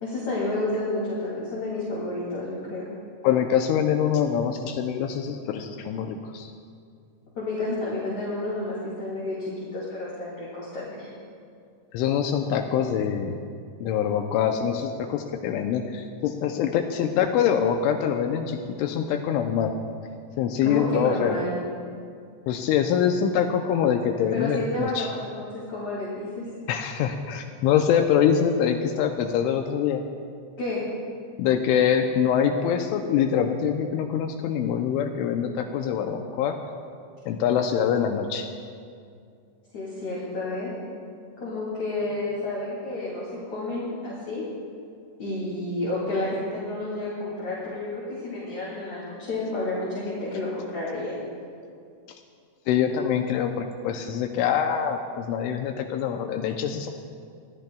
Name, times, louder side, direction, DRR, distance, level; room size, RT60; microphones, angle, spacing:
voice 1, 0.0-2.9 7.4-11.1 20.6-21.5 24.3-26.5 30.6-30.8 39.7-40.7 41.4-44.4 45.2-51.2, left 2 dB, 40° left, -7 dB, 3.2 m, -30 dB
voice 2, 3.2-6.5 11.9-13.4 13.8-19.7 20.4-21.4 22.5-25.1 26.7-30.0 31.4-36.6 37.3-38.5 52.7-56.9, left 8 dB, 85° left, 4 dB, 2.9 m, -24 dB
24.5 x 16.5 x 2.3 m, 2.3 s
omnidirectional pair, 5.8 m